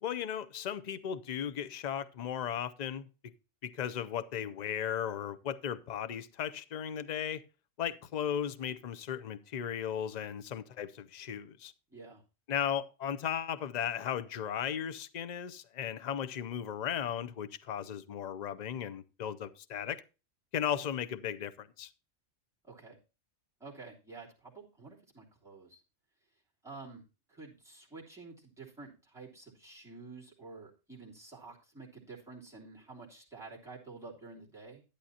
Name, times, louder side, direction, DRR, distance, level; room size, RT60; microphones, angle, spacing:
voice 1, 0.0-3.1 3.6-7.4 7.8-11.7 12.5-20.0 20.5-21.9, left 9 dB, 45° left, 0.6 m, -36 dB
voice 2, 11.9-12.2 22.6-23.0 23.6-25.8 26.6-34.8, right 3 dB, ahead, 2.9 m, -50 dB
11.5 x 10.5 x 2.8 m
omnidirectional pair, 1.3 m